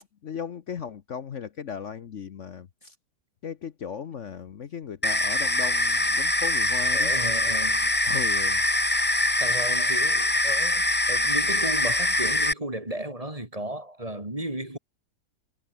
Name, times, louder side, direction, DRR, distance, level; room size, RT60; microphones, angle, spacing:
voice 1, 0.2-2.9 3.4-7.1 8.0-8.6, left 7 dB, 55° left, 1.2 m, -36 dB
sound 1, 5.0-12.5, left 1 dB, 10° left, 0.9 m, -23 dB
voice 2, 6.9-8.2 9.4-14.8, right 1 dB, 20° right, 3.7 m, -34 dB
omnidirectional pair, 1.6 m